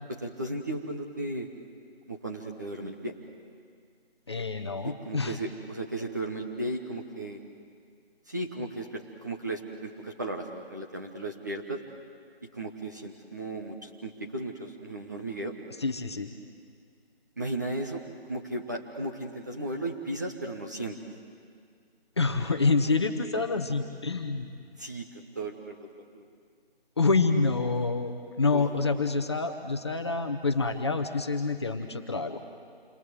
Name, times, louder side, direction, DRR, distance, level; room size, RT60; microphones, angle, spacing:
voice 1, 0.1-1.5 2.1-3.2 4.8-7.4 8.3-11.8 12.5-15.5 17.4-18.0 18.3-21.0 24.8-26.2 28.5-28.7 28.9-29.0, right 1 dB, 20° right, 1 dB, 1.0 m, -35 dB
voice 2, 4.3-5.4 15.8-16.3 22.2-24.5 27.0-32.4, left 3 dB, 25° left, 6 dB, 1.2 m, -27 dB
28.5 x 22.5 x 7.9 m, 2.2 s
figure-of-eight pair, 165°, 32 cm